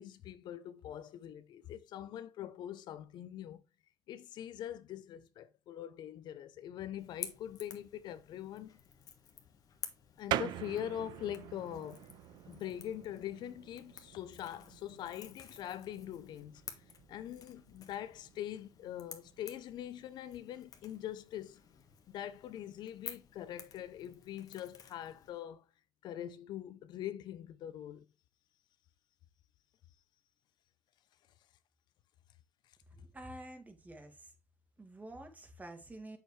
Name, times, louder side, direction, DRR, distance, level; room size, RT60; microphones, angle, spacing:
voice 1, 0.0-3.6 4.1-8.8 10.2-12.0 12.5-16.6 17.1-21.6 22.1-25.6 26.0-28.0, left 11 dB, 65° left, 0.7 m, -43 dB
Crackle / Crack, 7.0-25.3, left 7 dB, 50° left, 1.5 m, -52 dB
sound 1, 10.3-20.5, right 13 dB, 70° right, 0.5 m, -45 dB
voice 2, 32.9-34.3 34.8-36.2, right 1 dB, 20° right, 2.3 m, -49 dB
7.5 x 6.6 x 3.3 m
supercardioid pair, 80°, 8 cm